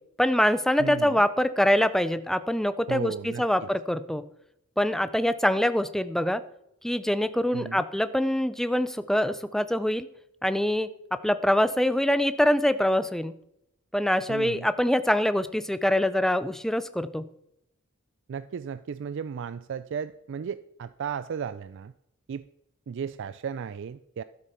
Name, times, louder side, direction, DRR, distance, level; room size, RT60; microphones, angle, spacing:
voice 1, 0.2-4.2 4.8-6.4 6.8-10.1 10.4-13.3 13.9-17.2, left 1 dB, ahead, 12 dB, 0.4 m, -24 dB
voice 2, 0.8-1.2 2.9-3.7 7.5-7.8 14.3-14.7 18.3-21.9 22.3-22.4 22.9-24.2, right 7 dB, 60° right, 15 dB, 0.3 m, -35 dB
12.5 x 7.7 x 5.8 m, 0.78 s
head